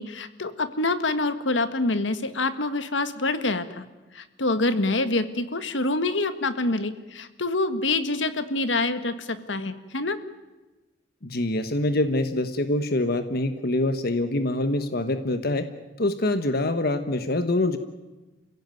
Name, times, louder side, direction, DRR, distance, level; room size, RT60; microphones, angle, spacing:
voice 1, 0.0-3.9 4.1-10.2, left 2 dB, 75° left, 11 dB, 1.6 m, -26 dB
voice 2, 11.2-15.6 16.0-17.8, left 2 dB, 55° left, 9 dB, 1.3 m, -25 dB
29.5 x 16.5 x 9.3 m, 1.2 s
head